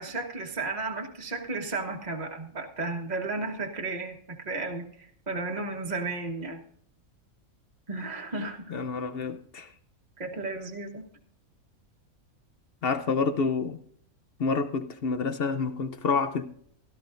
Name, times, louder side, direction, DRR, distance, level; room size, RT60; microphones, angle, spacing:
voice 1, 0.0-6.6 7.9-8.7 10.2-11.0, right 3 dB, 30° right, 1.4 m, -34 dB
voice 2, 8.7-9.7 12.8-13.8 14.4-16.4, left 4 dB, 50° left, 0.8 m, -28 dB
17.0 x 12.5 x 2.6 m
omnidirectional pair, 1.5 m